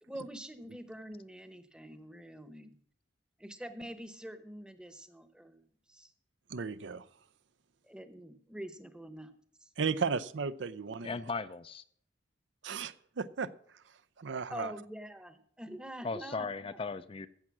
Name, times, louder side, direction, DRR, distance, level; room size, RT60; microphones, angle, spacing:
voice 1, 0.0-2.8 3.4-5.6 5.9-6.1 7.9-9.3 9.6-9.7 14.5-16.8, equal, 5° right, 11 dB, 0.9 m, -45 dB
voice 2, 6.5-7.1 9.8-11.2 12.6-13.5 14.2-14.7, right 5 dB, 70° right, 16 dB, 0.5 m, -35 dB
voice 3, 11.0-11.8 16.0-17.3, left 4 dB, 30° left, 13 dB, 0.4 m, -37 dB
14.5 x 7.7 x 6.0 m, 0.62 s
head